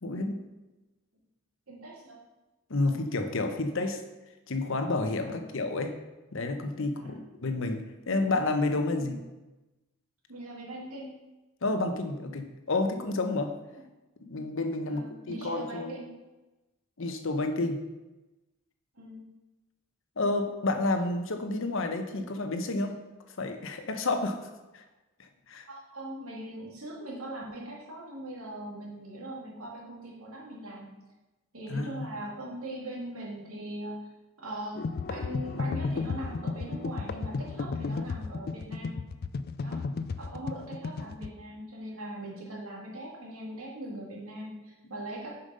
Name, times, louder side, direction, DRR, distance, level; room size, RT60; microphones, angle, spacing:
voice 1, 0.0-0.4 2.7-4.0 4.5-5.9 6.3-9.2 11.6-13.5 14.2-15.9 17.0-17.8 20.2-23.0 23.4-24.4 24.7-24.8 25.5-25.6 31.7-32.1, left 2 dB, 65° left, 7 dB, 0.9 m, -30 dB
voice 2, 1.7-2.2 2.8-3.0 5.2-5.6 7.0-7.3 8.9-9.2 10.3-11.1 13.7-13.8 14.9-16.1 19.0-19.2 25.7-30.9 31.5-34.1 34.4-39.0 39.6-39.8 40.2-45.4, right 1 dB, 85° right, -3 dB, 2.2 m, -41 dB
sound 1, 34.8-41.3, left 4 dB, 45° left, 0.3 m, -33 dB
6.9 x 5.3 x 5.4 m, 1.1 s
head